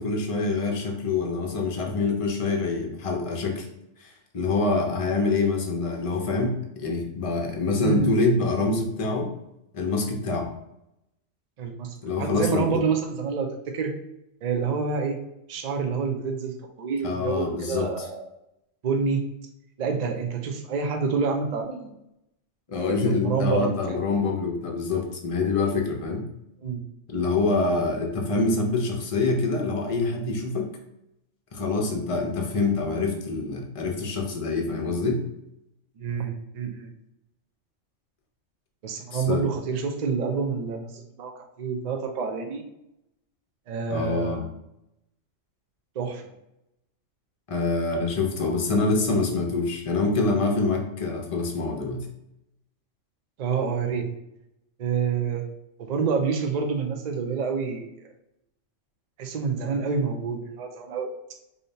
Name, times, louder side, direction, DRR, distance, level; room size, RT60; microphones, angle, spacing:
voice 1, 0.0-3.7 4.0-9.3 9.7-10.5 12.0-12.8 17.0-18.1 22.7-26.3 27.1-30.7 31.5-35.2 39.1-39.4 43.9-44.4 47.5-52.1, left 3 dB, 35° left, 1 dB, 0.5 m, -25 dB
voice 2, 7.8-8.3 11.6-13.9 14.4-15.2 15.5-18.2 18.8-19.2 19.8-21.9 23.0-24.0 26.6-26.8 36.0-36.9 38.8-41.3 41.6-42.6 43.7-44.5 46.0-46.2 53.4-54.1 54.8-55.4 55.8-57.9 59.2-61.1, right 5 dB, 50° right, 4 dB, 0.5 m, -28 dB
5.0 x 2.7 x 2.7 m, 0.85 s
omnidirectional pair, 1.3 m